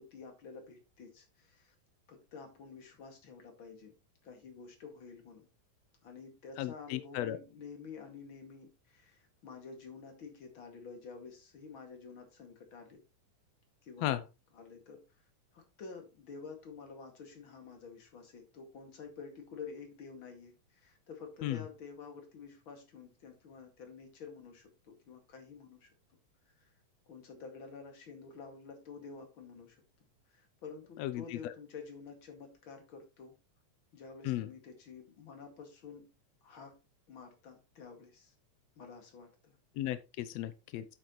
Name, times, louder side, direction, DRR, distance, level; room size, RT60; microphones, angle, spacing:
voice 1, 0.0-1.7 2.1-3.9 4.2-5.5 6.0-13.0 13.8-14.2 14.5-15.0 15.5-25.9 26.6-26.7 27.1-29.8 30.3-33.3 33.9-36.1 36.4-36.8 37.1-38.3 38.8-39.6, left 5 dB, 40° left, 4 dB, 2.6 m, -50 dB
voice 2, 6.6-7.4 14.0-14.2 21.4-21.6 31.0-31.5 34.2-34.5 39.8-40.8, left 13 dB, 85° left, 13 dB, 1.5 m, -35 dB
8.8 x 7.9 x 3.0 m, 0.28 s
omnidirectional pair, 3.6 m